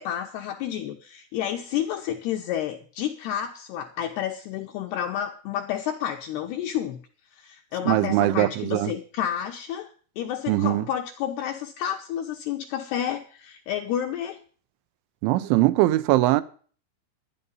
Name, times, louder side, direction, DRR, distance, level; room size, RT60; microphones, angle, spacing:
voice 1, 0.0-7.0 7.4-14.4, left 10 dB, 80° left, 2.4 m, -30 dB
voice 2, 7.9-8.9 10.5-10.8 15.2-16.4, right 16 dB, 80° right, 3.0 m, -21 dB
12.0 x 10.5 x 5.4 m
omnidirectional pair, 5.7 m